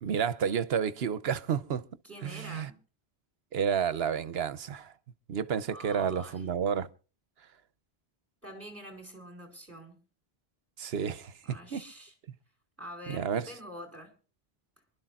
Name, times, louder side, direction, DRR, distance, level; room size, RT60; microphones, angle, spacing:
voice 1, 0.0-1.8 2.2-2.7 3.5-4.9 5.3-6.9 10.8-11.8 13.1-13.5, right 7 dB, 75° right, 1.0 m, -30 dB
voice 2, 2.0-2.8 5.7-6.5 8.4-10.0 11.4-12.1 12.8-14.1, equal, 15° right, 4.5 m, -46 dB
27.5 x 12.5 x 2.4 m
omnidirectional pair, 1.1 m